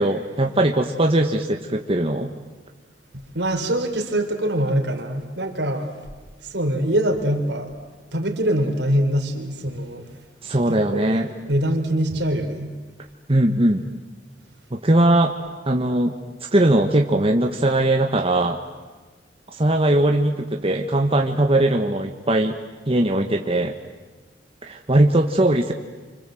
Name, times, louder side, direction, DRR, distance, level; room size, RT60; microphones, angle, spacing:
voice 1, 0.0-2.3 10.4-11.3 13.3-13.8 14.7-15.3 15.7-16.1 16.5-18.6 19.5-22.6 22.9-23.7 24.6-25.7, right 1 dB, 35° right, 3 dB, 1.4 m, -20 dB
voice 2, 3.1-5.9 6.4-7.7 8.1-10.1 10.7-12.8, right 1 dB, 75° right, 4 dB, 4.0 m, -24 dB
29.5 x 26.0 x 7.8 m, 1.3 s
head